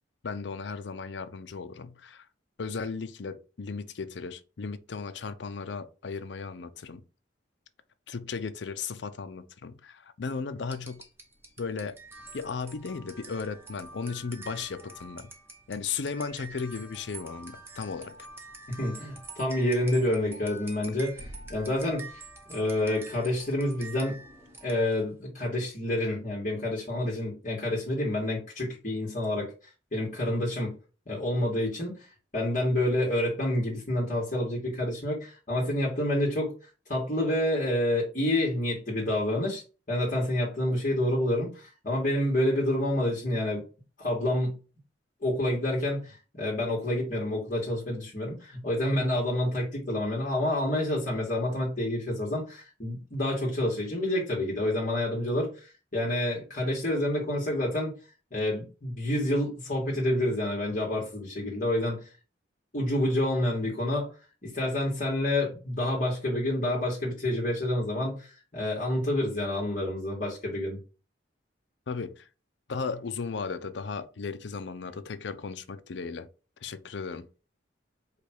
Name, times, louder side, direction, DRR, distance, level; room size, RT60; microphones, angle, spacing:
voice 1, 0.2-2.3 2.6-7.0 8.1-11.0 11.6-12.0 12.3-15.3 15.7-18.2 71.9-72.3 72.7-76.3 76.6-77.3, left 5 dB, 65° left, 0.5 m, -36 dB
sound 1, 10.7-25.1, right 2 dB, 15° right, 0.9 m, -47 dB
voice 2, 18.7-21.1 21.5-22.1 22.5-24.2 24.6-29.5 29.9-30.7 31.1-32.0 32.3-36.5 36.9-39.6 39.9-43.6 44.0-44.6 45.2-57.9 58.3-62.1 62.7-64.1 64.4-70.8, left 1 dB, 45° left, 1.6 m, -28 dB
5.0 x 2.3 x 4.4 m
head